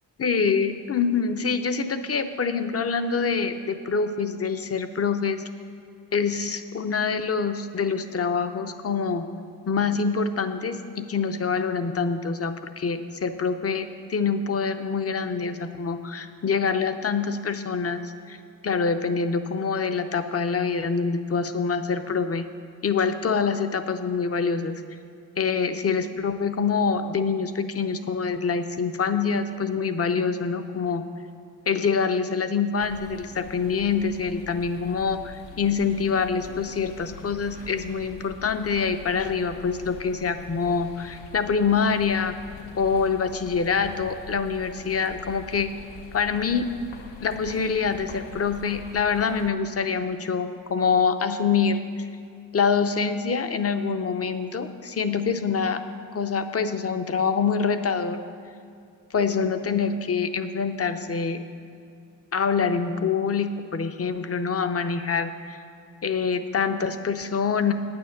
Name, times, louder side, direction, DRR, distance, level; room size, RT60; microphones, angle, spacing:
voice 1, 0.2-5.4 6.1-9.3 9.7-18.0 18.3-18.4 18.6-22.4 22.8-24.8 25.4-31.0 31.7-42.3 42.8-45.7 46.1-46.8 47.2-52.1 52.5-55.8 56.1-58.2 59.1-61.4 62.3-65.6 66.0-67.7, left 5 dB, 35° left, 9 dB, 0.6 m, -25 dB
sound 1, 32.8-49.5, left 5 dB, 80° left, 1.1 m, -44 dB
9.6 x 9.1 x 6.5 m, 2.4 s
wide cardioid pair, 115°, 43 cm